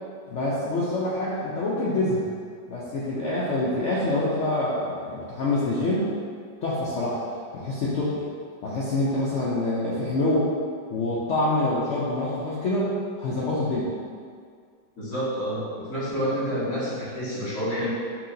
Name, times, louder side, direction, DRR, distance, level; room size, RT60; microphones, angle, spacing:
voice 1, 0.3-2.2 2.7-6.1 6.6-7.2 7.5-8.2 8.6-10.5 10.9-13.9 16.1-16.2, left 2 dB, 75° left, -8 dB, 0.6 m, -26 dB
voice 2, 15.0-17.9, equal, 50° left, -10 dB, 1.7 m, -28 dB
5.7 x 2.8 x 2.6 m, 2.1 s
omnidirectional pair, 1.9 m